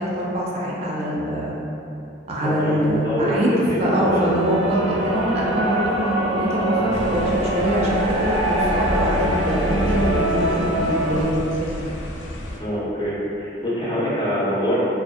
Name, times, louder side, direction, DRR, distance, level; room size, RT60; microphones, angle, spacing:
voice 1, 0.0-1.5 2.3-11.8, equal, 35° right, -5 dB, 0.4 m, -23 dB
voice 2, 2.4-4.3 12.6-14.8, equal, 25° left, -9 dB, 0.6 m, -24 dB
sound 1, 3.9-11.2, right 1 dB, 65° right, 1.0 m, -24 dB
sound 2, 6.9-12.6, left 1 dB, 80° left, 0.3 m, -29 dB
2.5 x 2.1 x 2.5 m, 2.8 s
head